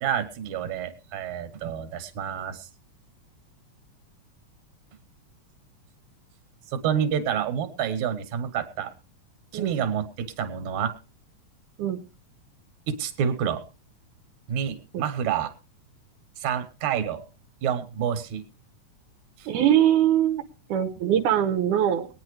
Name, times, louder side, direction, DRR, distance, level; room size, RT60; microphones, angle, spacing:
voice 1, 0.0-2.7 6.7-8.9 9.5-10.9 12.9-13.6 14.5-15.5 16.4-17.3 17.6-18.5 19.4-19.5, right 8 dB, 70° right, 9 dB, 2.6 m, -28 dB
voice 2, 19.5-20.4 20.7-22.1, right 10 dB, 90° right, 5 dB, 2.4 m, -22 dB
22.0 x 9.7 x 3.2 m, 0.32 s
omnidirectional pair, 3.5 m